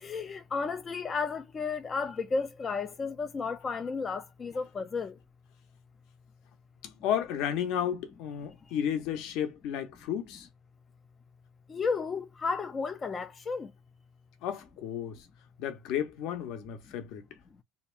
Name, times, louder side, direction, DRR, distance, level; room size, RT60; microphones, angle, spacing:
voice 1, 0.0-5.1 11.7-13.7, left 4 dB, 20° left, 0.3 m, -33 dB
voice 2, 6.8-10.5 14.4-15.2 15.6-17.3, left 9 dB, 60° left, 0.6 m, -33 dB
2.8 x 2.3 x 2.5 m
cardioid pair, 175°, 0 cm